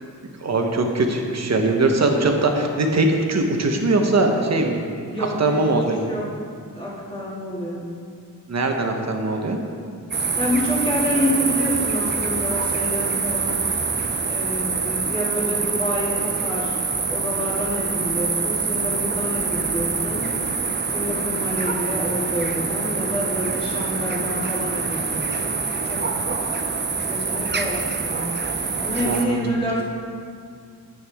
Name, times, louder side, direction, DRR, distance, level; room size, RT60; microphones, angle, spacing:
voice 1, 0.4-4.8 5.4-6.0 8.5-9.6 29.1-29.4, right 2 dB, 45° right, 3 dB, 1.0 m, -21 dB
voice 2, 5.1-6.3 6.6-7.8 10.2-13.6 14.3-16.8 17.1-20.3 20.9-26.0 27.1-28.2 28.8-29.8, equal, 15° left, -7 dB, 2.2 m, -28 dB
sound 1, 10.1-29.2, right 4 dB, 30° right, 0.5 m, -25 dB
9.8 x 8.1 x 3.5 m, 2.3 s
wide cardioid pair, 130°, 36 cm